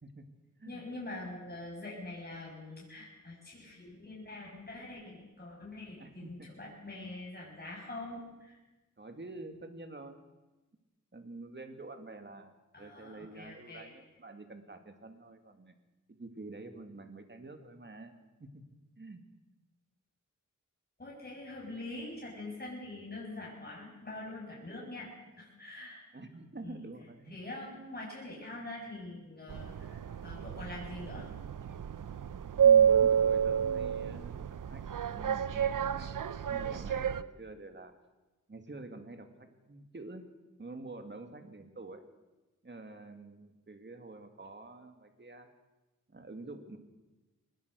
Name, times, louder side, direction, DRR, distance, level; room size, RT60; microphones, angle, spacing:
voice 1, 0.6-8.6 12.7-13.9 21.0-25.1 25.4-26.1 26.6-26.8 27.3-31.3, left 2 dB, 30° left, -4 dB, 6.7 m, -44 dB
voice 2, 6.0-6.5 9.0-10.2 11.1-15.7 16.1-18.1 18.4-18.5 19.0-19.2 26.1-27.3 27.7-27.8 32.6-36.2 36.4-37.9 38.5-40.3 40.6-42.0 42.6-45.5 46.1-46.8, right 2 dB, 35° right, 6 dB, 2.4 m, -47 dB
sound 1, 29.5-37.2, right 8 dB, 80° right, 0.8 m, -29 dB
22.5 x 20.5 x 6.5 m, 1.1 s
wide cardioid pair, 90°, 31 cm